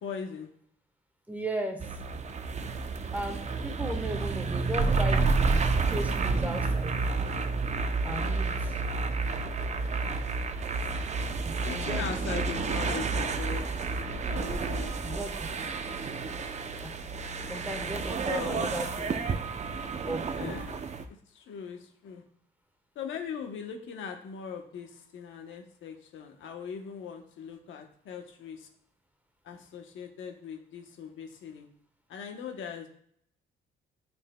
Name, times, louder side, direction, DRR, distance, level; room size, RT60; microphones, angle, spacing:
voice 1, 0.0-0.5 8.1-8.5 11.6-13.6 14.1-15.3 17.5-17.6 18.3-18.7 20.4-20.8 21.3-22.2 22.9-28.7 29.4-31.7 32.1-32.9, left 7 dB, 75° left, 3 dB, 1.0 m, -40 dB
voice 2, 1.3-1.8 3.1-7.0 8.0-8.5 11.4-12.1 14.9-15.5 16.8-16.9 17.5-19.2 20.0-20.6, right 1 dB, 10° right, 4 dB, 1.1 m, -36 dB
sound 1, 1.8-21.1, right 4 dB, 35° right, 0.6 m, -30 dB
9.6 x 4.4 x 2.2 m, 0.65 s
cardioid pair, 90°, 20 cm